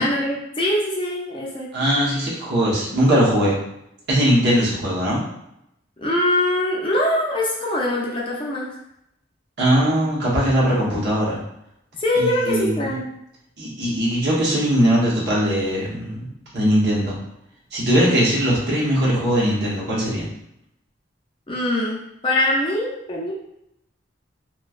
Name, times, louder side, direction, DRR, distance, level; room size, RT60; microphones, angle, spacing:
voice 1, 0.0-1.7 6.0-8.7 12.0-13.0 21.5-23.3, left 1 dB, 30° left, -4 dB, 0.5 m, -23 dB
voice 2, 1.7-3.5 4.1-5.2 9.6-11.4 12.2-12.8 13.6-17.2 17.7-20.3, equal, 60° right, -6 dB, 1.0 m, -20 dB
3.1 x 2.2 x 2.4 m, 0.80 s
head